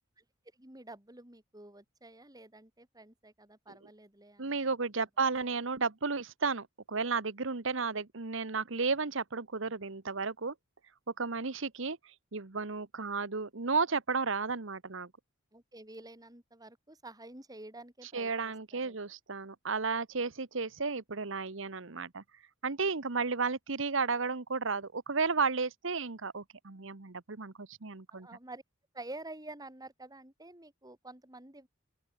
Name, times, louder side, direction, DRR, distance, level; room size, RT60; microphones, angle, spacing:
voice 1, 0.5-4.7 15.5-19.0 28.1-28.6 28.9-31.7, right 2 dB, 20° right, 4.3 m, -49 dB
voice 2, 4.4-10.5 11.2-15.1 18.1-22.2 22.6-28.3, right 4 dB, 70° right, 1.3 m, -33 dB
open air
head